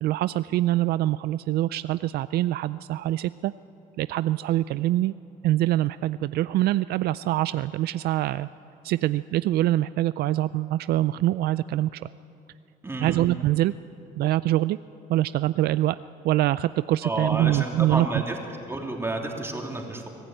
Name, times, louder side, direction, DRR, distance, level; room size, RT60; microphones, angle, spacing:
voice 1, 0.0-3.5 4.0-5.1 5.4-8.5 8.8-12.1 13.0-13.7 14.2-14.8 15.1-16.0 16.2-18.2, right 15 dB, 70° right, 15 dB, 0.4 m, -24 dB
voice 2, 12.8-13.2 17.0-18.4 18.7-20.1, right 2 dB, 15° right, 1 dB, 3.0 m, -30 dB
24.0 x 15.0 x 9.0 m, 2.9 s
cardioid pair, 110°, 17 cm